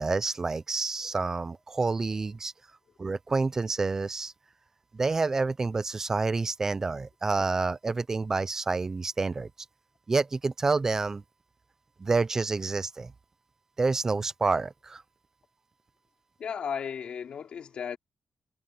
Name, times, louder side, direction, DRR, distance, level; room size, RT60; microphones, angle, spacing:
voice 1, 0.0-2.5 3.0-4.3 4.9-9.5 10.1-11.2 12.0-13.1 13.8-15.0, right 3 dB, 25° right, 0.6 m, -28 dB
voice 2, 16.4-18.0, left 7 dB, 65° left, 2.9 m, -35 dB
wide cardioid pair, 180°, 2 cm